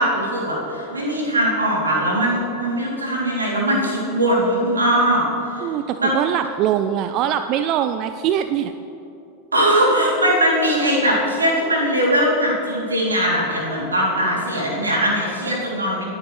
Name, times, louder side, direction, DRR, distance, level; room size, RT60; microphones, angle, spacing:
voice 1, 0.0-5.2 5.5-5.7 6.0-6.1 9.5-16.0, right 1 dB, 85° right, -4 dB, 3.1 m, -20 dB
voice 2, 5.6-8.7, right 10 dB, 45° right, 10 dB, 0.4 m, -22 dB
21.0 x 9.2 x 3.3 m, 2.8 s
figure-of-eight pair, 90°, 0 cm